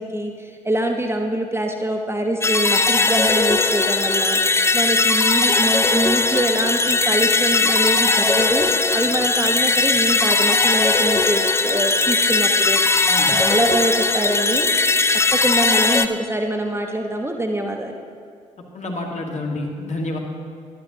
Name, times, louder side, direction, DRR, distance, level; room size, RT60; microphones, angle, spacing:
voice 1, 0.0-4.4 4.7-14.7 15.3-18.0, right 1 dB, 15° right, 3 dB, 0.9 m, -24 dB
sound 1, 2.4-16.1, left 3 dB, 15° left, 0.5 m, -19 dB
voice 2, 13.1-13.4 18.7-20.2, left 2 dB, 40° left, 0 dB, 1.8 m, -28 dB
13.0 x 11.5 x 2.9 m, 2.1 s
hypercardioid pair, 40°, 17 cm